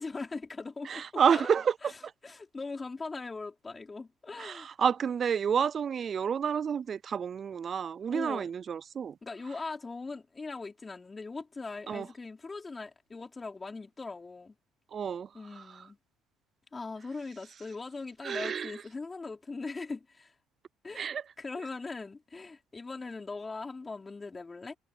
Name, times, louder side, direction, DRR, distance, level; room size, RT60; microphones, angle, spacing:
voice 1, 0.0-1.5 1.8-4.7 8.1-8.5 9.2-14.5 15.3-16.0 16.7-20.3 20.8-21.1 21.4-24.8, left 3 dB, 25° left, 4.7 m, -40 dB
voice 2, 0.9-1.7 4.4-9.2 11.9-12.1 14.9-15.3 15.6-15.9 18.2-18.7 21.0-21.2, right 7 dB, 45° right, 0.4 m, -29 dB
supercardioid pair, 75°, 0 cm